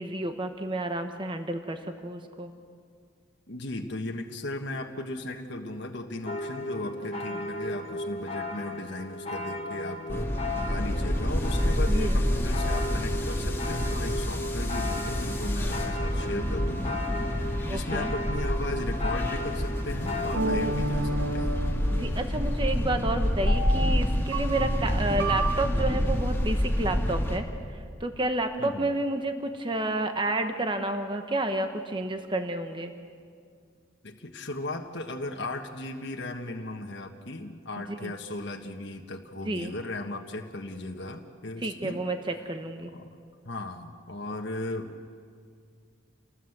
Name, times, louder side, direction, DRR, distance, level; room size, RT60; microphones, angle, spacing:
voice 1, 0.0-2.5 10.6-10.8 11.9-12.2 17.7-18.1 20.6-20.8 21.9-27.5 27.7-32.9 38.0-38.1 39.4-39.7 41.6-42.9, right 2 dB, 25° right, 6 dB, 1.1 m, -30 dB
voice 2, 3.5-21.7 28.6-28.9 34.0-42.0 42.9-43.1 43.4-45.1, left 2 dB, 55° left, 2 dB, 1.5 m, -37 dB
sound 1, 6.3-20.4, left 2 dB, 30° left, 1.5 m, -35 dB
sound 2, 10.1-27.4, equal, 10° left, 2.0 m, -28 dB
sound 3, 20.3-22.6 23.5-25.7, right 2 dB, 85° right, 2.6 m, -32 dB
28.5 x 19.0 x 8.0 m, 2.2 s
head